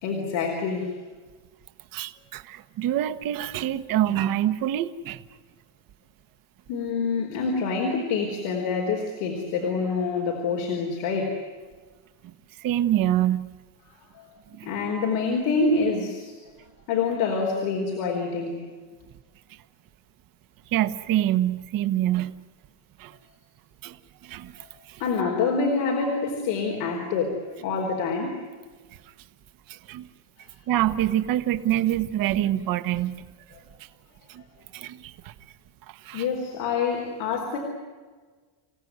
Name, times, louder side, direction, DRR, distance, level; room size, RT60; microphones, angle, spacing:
voice 1, 0.0-0.9 6.7-11.4 14.1-14.3 14.6-16.3 16.9-18.6 25.0-27.4 27.6-28.4 36.1-37.6, left 4 dB, 85° left, 0 dB, 4.6 m, -26 dB
voice 2, 1.9-5.2 12.6-13.5 14.5-14.7 20.7-22.3 23.0-23.1 23.8-24.0 24.2-25.0 29.7-30.0 30.7-33.2 34.3-34.4 34.7-35.3 36.0-36.2, right 12 dB, 45° right, 10 dB, 1.2 m, -26 dB
29.0 x 17.0 x 9.5 m, 1.4 s
cardioid pair, 165°, 46 cm